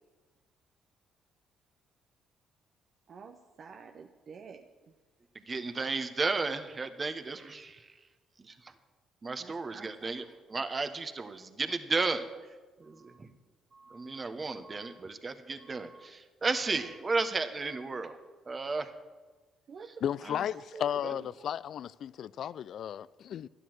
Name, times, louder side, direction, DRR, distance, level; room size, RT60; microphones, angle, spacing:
voice 1, 3.1-4.7 9.4-10.1 19.7-19.9 20.7-21.0, right 5 dB, 55° right, 0.8 m, -48 dB
voice 2, 5.5-7.8 8.4-8.5 9.2-10.2 10.5-12.2 12.8-13.3 13.7-18.2 18.5-18.9, right 3 dB, 35° right, 1.2 m, -33 dB
voice 3, 20.0-23.5, left 9 dB, 60° left, 0.3 m, -34 dB
12.5 x 9.8 x 6.2 m
hypercardioid pair, 55°, 0 cm